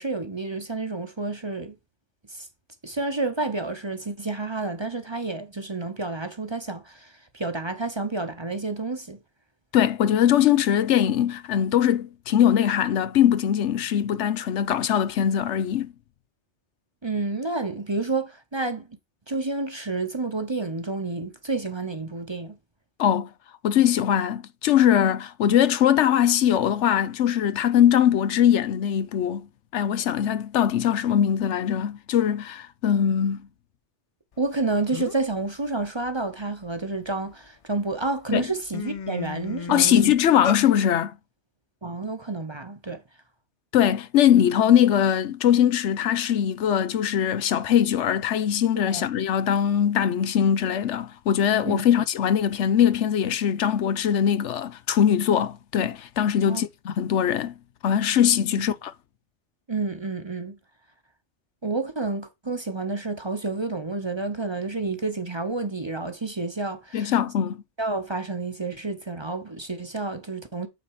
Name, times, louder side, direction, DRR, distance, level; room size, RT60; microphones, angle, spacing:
voice 1, 0.0-1.7 2.3-2.5 2.8-9.2 17.0-18.9 19.3-22.6 34.4-40.1 41.8-43.0 48.9-49.1 51.6-51.8 56.4-56.6 58.5-58.6 59.7-60.6 61.6-67.2 67.8-70.7, right 3 dB, 25° right, 0.9 m, -30 dB
voice 2, 9.7-15.9 23.0-23.3 23.6-29.5 29.7-33.5 38.3-38.5 39.7-41.1 43.7-57.5 57.8-58.9 66.9-67.6, left 9 dB, 80° left, 1.0 m, -21 dB
sound 1, 34.6-34.7 34.9-35.3 35.8-37.3 37.9-38.1 38.4-40.6, left 7 dB, 65° left, 0.3 m, -33 dB
8.7 x 4.2 x 4.8 m
omnidirectional pair, 1.2 m